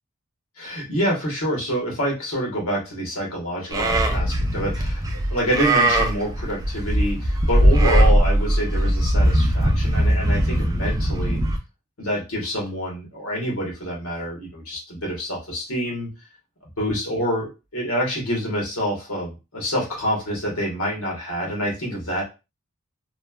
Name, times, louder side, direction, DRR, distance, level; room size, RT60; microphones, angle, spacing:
voice 1, 0.6-5.0 5.3-11.4 12.0-16.1 16.8-22.2, equal, 70° left, -2 dB, 1.2 m, -27 dB
Livestock farm animals working animals, 3.7-11.6, right 1 dB, 15° right, 0.3 m, -20 dB
3.0 x 2.1 x 2.2 m, 0.27 s
head